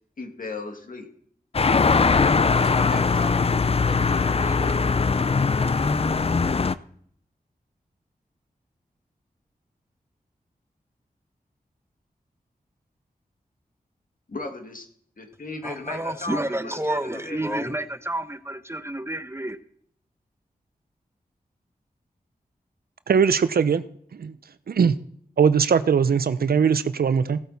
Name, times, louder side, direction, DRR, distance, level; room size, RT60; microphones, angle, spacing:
voice 1, 0.2-1.1 2.6-3.5 3.9-4.9 14.3-14.9 15.2-17.8, left 3 dB, 60° left, 1.9 m, -36 dB
sound 1, 1.5-6.7, left 4 dB, 40° left, 0.5 m, -21 dB
voice 2, 15.6-19.6, right 1 dB, 15° right, 0.9 m, -29 dB
voice 3, 23.1-23.8 24.1-24.4 24.7-24.9 25.4-27.4, right 6 dB, 75° right, 0.6 m, -20 dB
17.0 x 8.2 x 4.1 m
cardioid pair, 45°, 16 cm